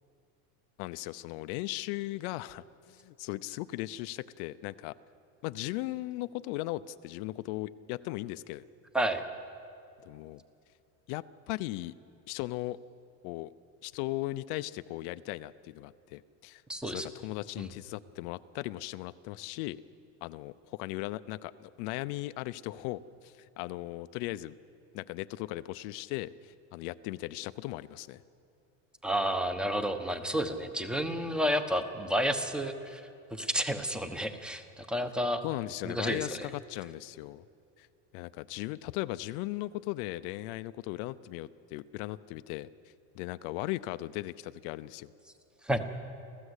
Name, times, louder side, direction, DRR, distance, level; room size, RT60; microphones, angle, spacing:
voice 1, 0.8-4.9 5.4-8.6 10.0-10.4 11.1-11.9 12.3-12.8 13.2-13.5 13.8-16.6 16.9-19.8 20.2-24.6 24.9-28.2 35.4-37.4 37.8-37.9 38.1-42.7 43.1-45.1, left 17 dB, 70° left, 14 dB, 0.7 m, -37 dB
voice 2, 16.7-17.1 17.6-17.7 29.0-35.4 35.8-36.5 45.6-45.8, equal, ahead, 8 dB, 1.1 m, -31 dB
29.0 x 14.5 x 8.3 m, 2.6 s
cardioid pair, 150°, 36 cm